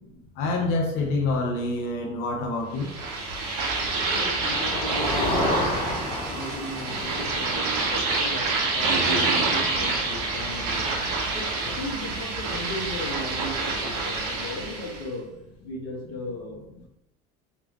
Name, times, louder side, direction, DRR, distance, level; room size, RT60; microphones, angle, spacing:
voice 1, 0.4-2.9, left 2 dB, 65° left, 0 dB, 1.0 m, -26 dB
sound 1, 2.8-15.0, right 3 dB, 85° right, 1.4 m, -27 dB
Motor vehicle (road), 3.3-11.0, left 1 dB, 25° left, 1.3 m, -32 dB
voice 2, 4.0-5.8 6.3-11.0 11.3-15.3 15.6-16.8, left 1 dB, 90° left, -9 dB, 1.7 m, -36 dB
4.2 x 3.6 x 3.1 m, 0.80 s
cardioid pair, 145°, 19 cm